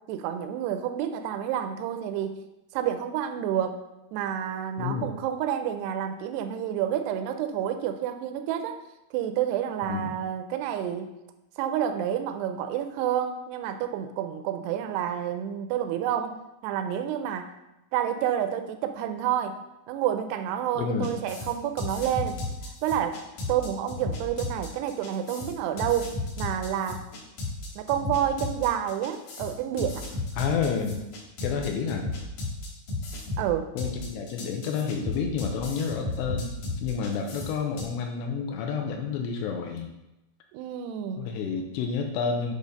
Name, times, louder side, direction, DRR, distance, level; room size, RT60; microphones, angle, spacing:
voice 1, 0.1-2.5 2.7-3.8 4.1-8.8 9.1-11.1 11.6-16.4 16.6-17.5 17.9-19.6 19.9-22.4 22.8-23.2 23.5-27.0 27.8-30.1 33.4-33.7 40.5-41.3, right 10 dB, 80° right, 7 dB, 2.4 m, -29 dB
voice 2, 4.8-5.1 9.9-10.1 20.8-21.2 30.4-31.0 31.4-32.1 33.8-39.9 41.2-42.5, left 6 dB, 80° left, 3 dB, 2.8 m, -30 dB
sound 1, 21.0-37.8, left 2 dB, 65° left, 2.4 m, -34 dB
9.2 x 3.4 x 5.3 m, 0.92 s
omnidirectional pair, 5.1 m